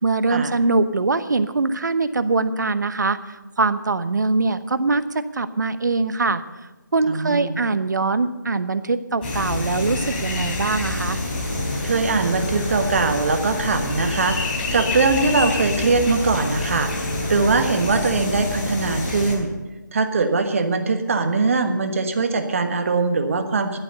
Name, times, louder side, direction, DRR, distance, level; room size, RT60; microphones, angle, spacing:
voice 1, 0.0-5.0 5.3-6.4 6.9-11.2, right 3 dB, 65° right, 12 dB, 1.0 m, -22 dB
voice 2, 7.1-7.6 11.8-19.5 19.9-23.8, right 4 dB, 40° right, 7 dB, 1.4 m, -21 dB
sound 1, 9.2-19.4, left 2 dB, 30° left, 4.0 m, -27 dB
11.5 x 11.5 x 6.7 m, 1.1 s
figure-of-eight pair, 165°, 11 cm